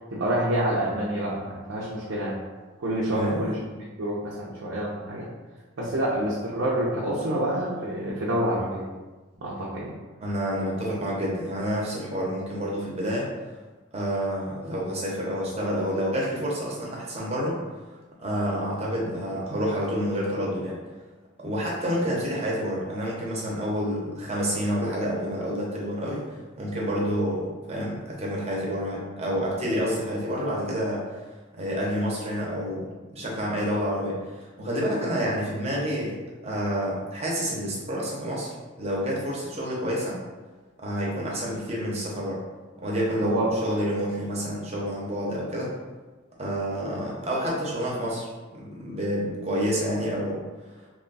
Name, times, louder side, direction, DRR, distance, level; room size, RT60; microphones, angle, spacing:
voice 1, 0.1-2.4 2.8-3.5 4.0-5.3 5.8-8.9 9.4-9.9 43.2-43.6, right 1 dB, 90° right, -6 dB, 0.6 m, -27 dB
voice 2, 3.1-3.4 10.2-13.3 13.9-17.6 18.2-20.8 21.4-26.2 26.6-31.0 31.6-40.2 40.8-42.4 42.8-45.7 46.4-50.4, equal, 30° right, -4 dB, 0.8 m, -28 dB
3.0 x 2.3 x 4.0 m, 1.3 s
head